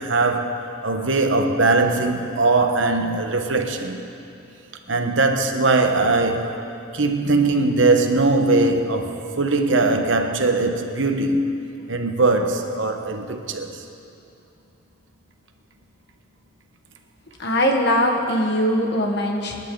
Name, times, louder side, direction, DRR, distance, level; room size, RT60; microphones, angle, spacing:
voice 1, 0.0-4.1 4.9-6.5 6.9-11.5 11.9-13.8, right 3 dB, 75° right, 5 dB, 1.2 m, -20 dB
voice 2, 17.4-19.6, equal, 60° left, 2 dB, 1.7 m, -21 dB
26.0 x 11.0 x 4.0 m, 2.7 s
head